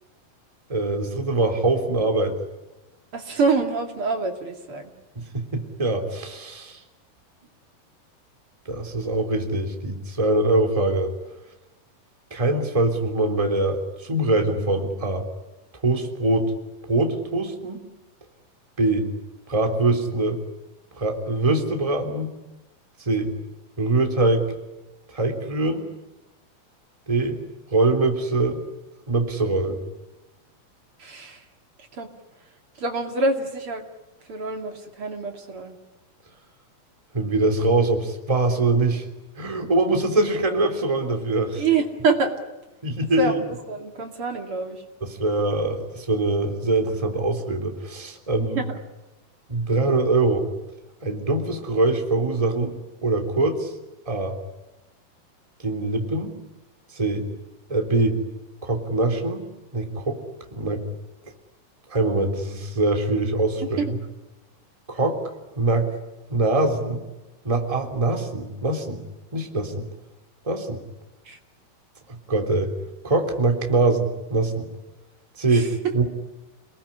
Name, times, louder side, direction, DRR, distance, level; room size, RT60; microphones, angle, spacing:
voice 1, 0.7-2.4 5.1-6.8 8.6-11.1 12.3-15.3 15.8-16.5 16.9-17.8 18.8-19.1 19.5-20.4 20.9-22.3 23.0-23.3 23.8-24.4 25.1-25.9 27.1-27.4 27.7-28.6 29.1-29.8 37.1-39.1 39.4-41.6 42.8-43.4 45.0-48.6 49.5-50.5 51.0-52.7 53.0-53.7 54.0-54.3 55.6-56.3 56.9-57.3 57.7-58.2 58.6-59.5 59.7-60.2 60.5-60.8 61.9-64.0 64.9-65.2 65.5-66.0 66.3-67.0 67.4-69.0 69.3-69.9 70.4-70.8 72.3-72.7 73.0-74.7 75.4-76.1, right 2 dB, 10° right, 4 dB, 2.9 m, -23 dB
voice 2, 3.1-4.9 31.0-31.4 32.0-32.1 32.8-33.8 34.3-35.7 41.6-42.3 43.2-43.3 43.7-44.8 48.4-48.8 63.8-63.9 71.2-71.4 75.5-75.7, right 4 dB, 40° right, 4 dB, 2.9 m, -26 dB
29.0 x 21.0 x 9.9 m, 1.0 s
omnidirectional pair, 4.5 m